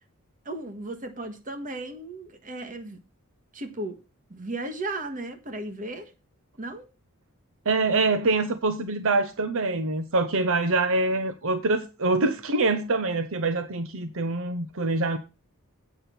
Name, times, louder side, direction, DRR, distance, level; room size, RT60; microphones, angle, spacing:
voice 1, 0.4-3.0 3.5-4.0 4.3-6.1 6.6-6.8, right 2 dB, 40° right, 1.6 m, -35 dB
voice 2, 7.6-15.2, right 3 dB, 65° right, 0.8 m, -25 dB
8.5 x 5.9 x 7.0 m
head